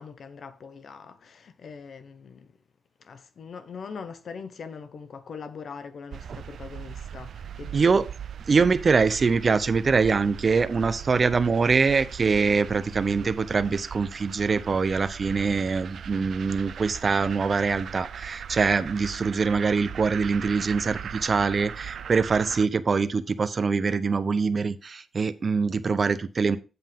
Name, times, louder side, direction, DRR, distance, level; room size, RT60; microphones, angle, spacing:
voice 1, 0.0-2.5 3.0-8.0, left 5 dB, 65° left, 1.1 m, -42 dB
sound 1, 6.1-22.7, right 8 dB, 75° right, 0.4 m, -39 dB
voice 2, 7.7-8.0 8.5-26.6, right 4 dB, 45° right, 0.7 m, -24 dB
8.0 x 7.4 x 3.6 m
cardioid pair, 105°, 0 cm